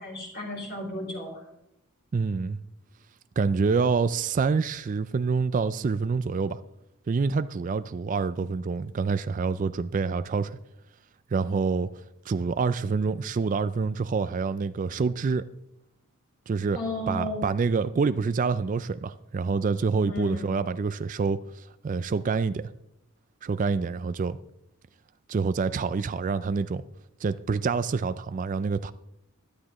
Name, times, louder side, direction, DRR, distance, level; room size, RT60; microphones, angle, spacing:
voice 1, 0.0-1.4 16.7-17.4 20.0-20.6, left 1 dB, 45° left, 4.1 m, -33 dB
voice 2, 2.1-2.6 3.4-6.6 7.1-10.6 11.3-11.9 12.3-15.4 16.5-16.8 17.1-22.7 23.4-24.4 25.3-26.8 27.2-28.9, right 4 dB, 35° right, 0.3 m, -27 dB
15.0 x 11.5 x 3.0 m
head